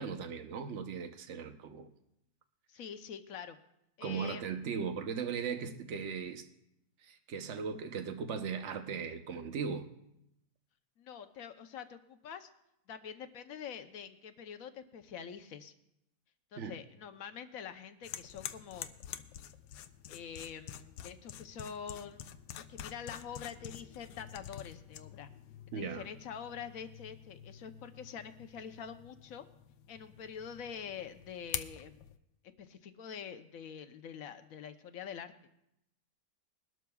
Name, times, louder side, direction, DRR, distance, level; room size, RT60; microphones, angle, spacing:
voice 1, 0.0-1.9 4.0-6.5 7.0-9.9 16.6-16.8 25.7-26.1, right 6 dB, 50° right, 7 dB, 0.9 m, -38 dB
voice 2, 2.7-3.6 4.0-4.5 11.0-12.5 12.9-15.7 16.5-18.9 20.1-22.2 22.7-25.3 25.7-29.5 29.9-32.0 32.6-35.3, left 7 dB, 60° left, 8 dB, 1.0 m, -45 dB
sound 1, 18.0-32.2, left 10 dB, 80° left, 1.3 m, -47 dB
21.5 x 12.5 x 2.3 m, 0.84 s
omnidirectional pair, 1.9 m